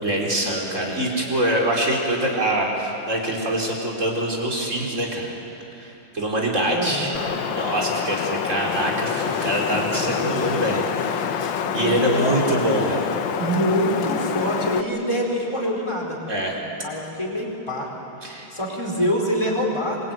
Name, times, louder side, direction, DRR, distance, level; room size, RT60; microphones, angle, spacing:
voice 1, 0.0-5.3 5.8-7.1 7.5-10.9 11.3-13.1 16.3-16.5 18.2-18.5, right 1 dB, 35° right, -1 dB, 4.6 m, -24 dB
voice 2, 6.7-7.3 11.5-12.9 13.4-16.2 16.8-17.9 18.5-20.1, equal, 15° left, -1 dB, 4.7 m, -25 dB
Wind, 7.1-14.8, left 8 dB, 65° left, 1.7 m, -27 dB
26.5 x 23.0 x 9.4 m, 3.0 s
omnidirectional pair, 2.3 m